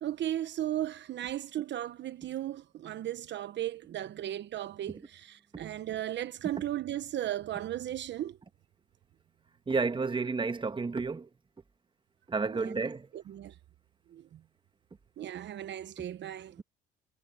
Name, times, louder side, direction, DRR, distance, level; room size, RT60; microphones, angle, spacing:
voice 1, 0.0-8.4 12.5-12.8 13.1-13.5 14.1-14.4 15.2-16.6, right 12 dB, 60° right, 1.1 m, -36 dB
voice 2, 9.7-11.3 12.3-13.1, right 4 dB, 25° right, 1.5 m, -31 dB
supercardioid pair, 75°, 21 cm